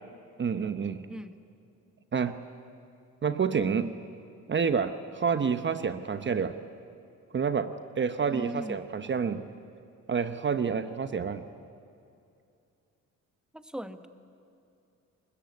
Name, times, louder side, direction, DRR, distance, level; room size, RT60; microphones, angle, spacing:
voice 1, 0.4-1.1 2.1-2.4 3.2-4.0 4.5-6.6 7.3-9.5 10.1-11.4, right 6 dB, 40° right, 10 dB, 1.0 m, -28 dB
voice 2, 8.3-8.8 13.5-14.1, equal, 5° right, 9 dB, 1.4 m, -38 dB
29.0 x 20.5 x 8.4 m, 2.5 s
cardioid pair, 90°, 30 cm